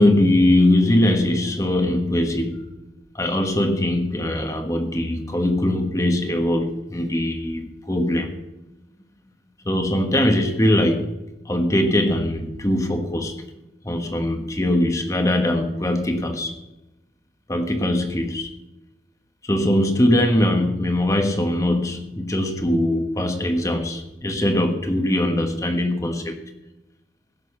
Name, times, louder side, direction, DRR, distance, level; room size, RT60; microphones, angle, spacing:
voice 1, 0.0-2.7 3.1-8.3 9.6-11.2 11.4-13.4 13.8-16.6 17.5-18.5 19.4-26.4, left 1 dB, 15° left, 4 dB, 1.3 m, -21 dB
16.0 x 6.7 x 8.0 m, 0.99 s
head